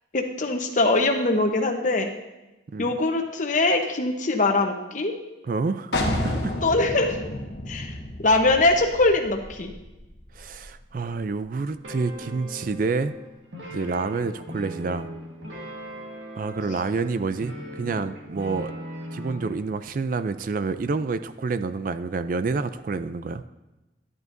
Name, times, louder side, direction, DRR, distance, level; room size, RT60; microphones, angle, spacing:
voice 1, 0.1-2.1 2.8-5.1 6.6-7.2 7.7-7.9 8.2-9.7, left 2 dB, 45° left, 4 dB, 0.9 m, -22 dB
voice 2, 5.4-6.5 10.4-13.1 13.7-15.1 16.4-18.7 19.1-23.4, right 4 dB, 45° right, 12 dB, 0.3 m, -28 dB
sound 1, 5.9-11.5, left 1 dB, 60° left, 1.2 m, -32 dB
sound 2, 11.8-19.6, equal, 85° right, 1.7 m, -39 dB
11.0 x 11.0 x 2.6 m, 1.0 s
head